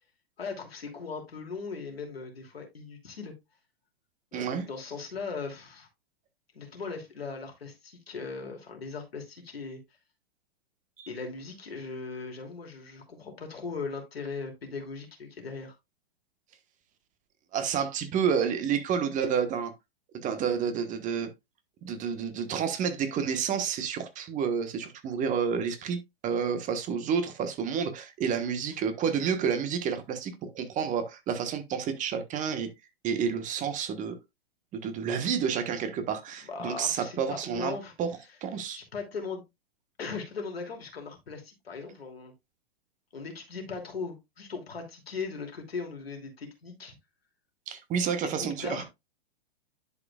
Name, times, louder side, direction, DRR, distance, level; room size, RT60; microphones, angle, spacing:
voice 1, 0.4-3.3 4.3-5.9 6.5-9.8 11.1-15.7 36.4-37.9 38.7-39.4 40.0-42.3 43.1-47.0 48.4-48.9, left 4 dB, 80° left, 2.8 m, -38 dB
voice 2, 4.3-4.6 11.0-11.1 17.5-19.7 20.1-21.3 21.8-26.0 26.2-32.7 33.0-34.2 34.7-37.7 38.0-38.1 38.4-38.8 47.7-48.8, right 7 dB, 25° right, 1.3 m, -29 dB
11.0 x 4.9 x 2.4 m
figure-of-eight pair, 110°, 30 cm